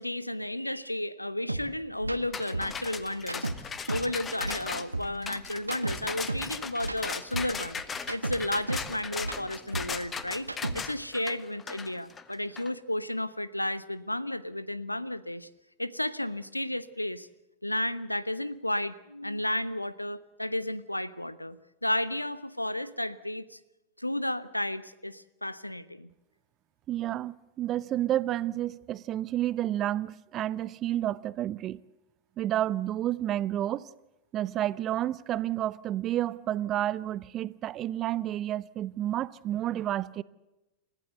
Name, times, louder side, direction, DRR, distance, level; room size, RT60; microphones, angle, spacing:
voice 1, 0.0-7.8 8.1-10.5 10.7-15.5 15.8-17.3 17.6-21.6 21.8-23.6 24.0-26.1, left 1 dB, 85° left, 0.9 m, -33 dB
sound 1, 1.5-1.6 2.0-2.2 2.5-4.1 4.4-6.5 6.8-8.9 9.2-11.0, right 2 dB, 85° right, 1.1 m, -34 dB
sound 2, 2.3-12.7, left 6 dB, 20° left, 1.3 m, -38 dB
voice 2, 26.9-31.8 32.4-33.8 34.3-40.2, right 12 dB, 30° right, 0.7 m, -30 dB
29.5 x 15.0 x 8.1 m
figure-of-eight pair, 90°, 0 cm